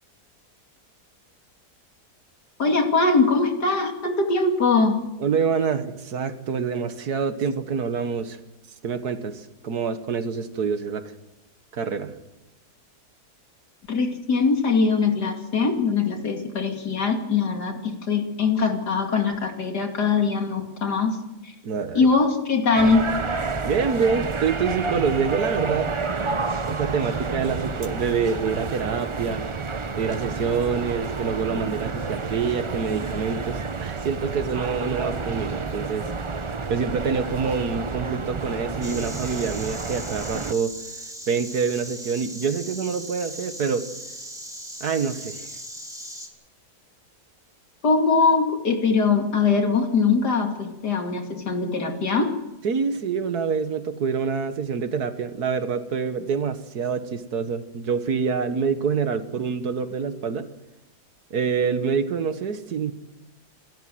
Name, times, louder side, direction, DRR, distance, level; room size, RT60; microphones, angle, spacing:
voice 1, 2.6-5.0 13.9-21.2 21.4-21.5 21.9-23.1 47.8-52.3, left 4 dB, 80° left, 3 dB, 3.1 m, -22 dB
voice 2, 5.2-8.4 8.8-11.0 11.7-12.1 21.6-22.1 23.7-26.3 26.6-29.4 30.0-36.1 36.7-40.8 41.3-43.9 44.8-45.5 52.6-60.5 61.3-62.9, right 6 dB, 70° right, 10 dB, 1.8 m, -26 dB
sound 1, 22.7-40.5, right 4 dB, 40° right, 0.4 m, -30 dB
Insect, 38.8-46.3, right 1 dB, ahead, 3.1 m, -38 dB
27.5 x 13.0 x 7.8 m, 0.96 s
omnidirectional pair, 1.7 m